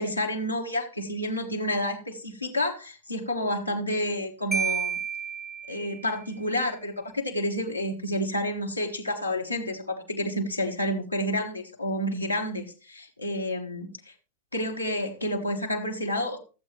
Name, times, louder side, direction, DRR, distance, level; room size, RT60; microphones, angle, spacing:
voice 1, 0.0-5.0 5.7-14.1 14.5-16.4, left 1 dB, 90° left, -1 dB, 1.4 m, -29 dB
Marimba xylophone, 4.5-6.2, right 7 dB, 10° right, 1.0 m, -31 dB
14.0 x 7.9 x 3.0 m, 0.34 s
figure-of-eight pair, 90°, 0 cm